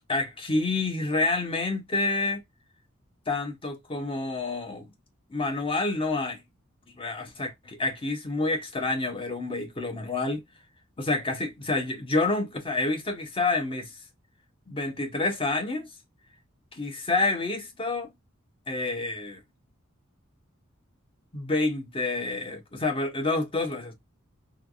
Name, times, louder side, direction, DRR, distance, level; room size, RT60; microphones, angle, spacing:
voice 1, 0.1-2.4 3.3-4.9 5.3-6.4 7.0-10.4 11.0-13.9 14.7-15.9 16.7-18.1 18.7-19.4 21.3-23.9, left 2 dB, 25° left, 0.9 m, -28 dB
3.3 x 2.3 x 2.4 m
head